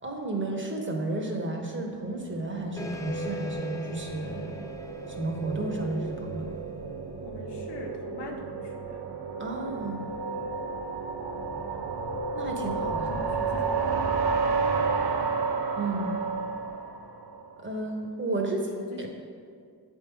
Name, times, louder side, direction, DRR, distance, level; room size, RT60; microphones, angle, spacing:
voice 1, 0.0-4.7 5.1-6.5 9.4-10.1 12.3-13.2 15.8-16.2 17.6-18.7 19.0-19.1, right 2 dB, 30° right, 1 dB, 1.1 m, -32 dB
sound 1, 2.3-17.5, right 4 dB, 75° right, 0.7 m, -32 dB
sound 2, 2.8-7.8, equal, 10° left, 0.6 m, -41 dB
voice 2, 7.2-9.1 11.6-11.8 12.6-12.8 13.1-13.8 14.0-14.2 15.3-15.5 18.5-19.1, left 3 dB, 85° left, 1 dB, 0.9 m, -42 dB
7.7 x 3.7 x 4.6 m, 2.2 s
cardioid pair, 65°, 40 cm